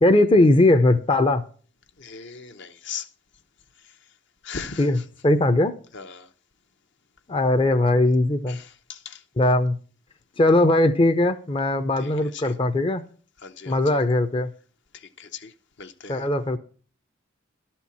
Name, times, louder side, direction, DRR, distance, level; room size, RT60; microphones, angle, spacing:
voice 1, 0.0-1.4 4.8-5.0 5.2-5.7 7.3-8.6 9.4-9.8 10.4-13.0 13.7-14.5 16.1-16.6, left 2 dB, 25° left, 0.5 m, -19 dB
voice 2, 2.0-3.1 3.8-4.0 4.4-5.1 5.9-6.3 8.5-9.2 12.0-12.6 13.4-14.0 14.9-16.3, left 6 dB, 60° left, 0.9 m, -39 dB
12.0 x 4.4 x 8.3 m
head